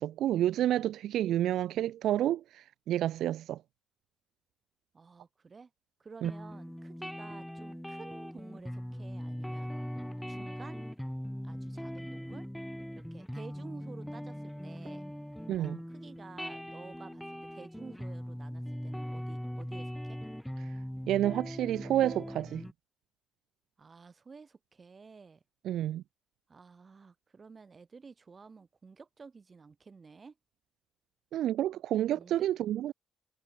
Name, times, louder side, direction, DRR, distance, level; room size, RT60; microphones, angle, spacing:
voice 1, 0.0-3.6 6.2-6.3 15.5-15.8 20.6-20.7 21.1-22.7 25.6-26.0 31.3-32.9, right 12 dB, 80° right, 0.6 m, -29 dB
voice 2, 4.9-5.7 6.0-9.7 10.3-10.9 11.4-12.5 12.9-15.0 15.6-20.2 23.8-25.4 26.5-30.4 32.1-32.5, right 4 dB, 35° right, 6.3 m, -52 dB
sound 1, 6.2-22.7, equal, ahead, 3.1 m, -40 dB
cardioid pair, 90°, 0 cm